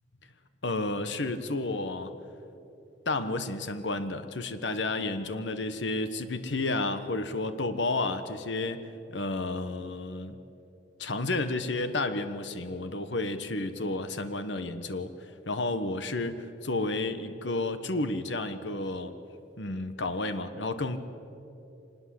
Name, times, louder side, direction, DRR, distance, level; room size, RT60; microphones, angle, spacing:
voice 1, 0.6-2.1 3.0-10.4 11.0-19.1 19.6-21.0, left 2 dB, 80° left, 10 dB, 1.3 m, -31 dB
25.0 x 20.0 x 7.7 m, 2.9 s
head